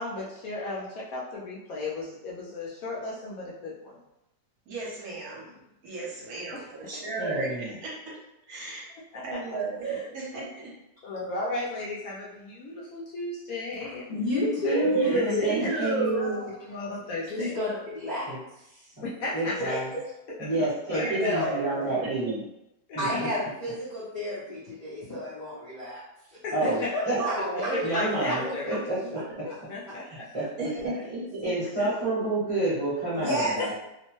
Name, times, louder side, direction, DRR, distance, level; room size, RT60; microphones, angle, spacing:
voice 1, 0.0-4.0 6.5-6.6 9.1-9.6 9.8-10.0 11.0-14.1 14.6-15.3 15.6-15.8 16.6-17.5 19.0-19.8 20.4-21.4 22.9-23.4 26.4-27.2 27.5-28.8 29.4-30.2 31.8-31.9 33.6-33.7, left 2 dB, 70° left, -5 dB, 0.9 m, -35 dB
voice 2, 4.7-5.5 5.8-8.2 8.5-8.9 9.2-10.7 14.9-16.5 17.4-17.6 19.5-19.9 20.9-22.3 27.1-27.8 28.1-28.9 30.6-31.6 32.0-32.2, right 3 dB, 65° right, -4 dB, 1.2 m, -34 dB
voice 3, 7.2-7.8 14.1-16.4 18.3-18.4 19.0-19.1 19.3-19.9 20.4-22.4 22.9-23.3 26.5-27.3 27.8-29.4 30.1-30.7 31.4-33.7, right 2 dB, 30° right, -10 dB, 0.7 m, -29 dB
voice 4, 13.8-16.3 17.3-18.3 18.8-18.9 19.6-19.7 21.1-21.8 23.0-26.0 26.3-27.3 27.9-28.0 30.6-31.0 33.2-33.6, equal, 45° left, -10 dB, 0.6 m, -31 dB
2.9 x 2.1 x 3.0 m, 0.88 s
omnidirectional pair, 1.8 m